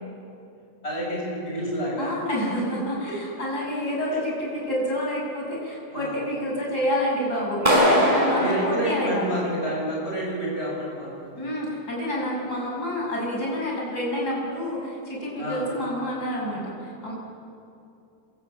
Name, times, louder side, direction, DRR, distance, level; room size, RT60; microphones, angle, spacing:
voice 1, 0.8-2.1 5.9-6.2 8.4-11.3 15.4-15.7, right 1 dB, 35° left, -4 dB, 8.3 m, -29 dB
voice 2, 2.0-9.4 11.3-17.1, equal, 60° left, -3 dB, 7.1 m, -28 dB
Clapping, 7.7-9.7, equal, 20° right, 5.2 m, -22 dB
27.0 x 22.5 x 8.7 m, 2.7 s
omnidirectional pair, 1.9 m